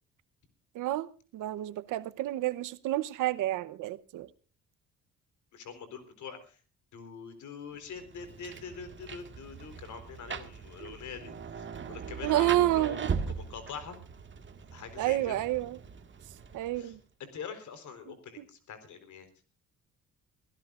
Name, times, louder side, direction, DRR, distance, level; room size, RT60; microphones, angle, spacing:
voice 1, 0.7-4.3 10.8-10.9 12.2-13.1 15.0-15.8 16.5-17.0 18.4-18.5, right 15 dB, 85° right, 1.0 m, -29 dB
voice 2, 5.5-6.6 6.9-14.0 14.7-15.4 16.8-19.3, left 6 dB, 75° left, 4.0 m, -44 dB
Rain, 7.9-17.0, right 6 dB, 40° right, 1.9 m, -40 dB
23.5 x 16.0 x 2.5 m
cardioid pair, 90°, 30 cm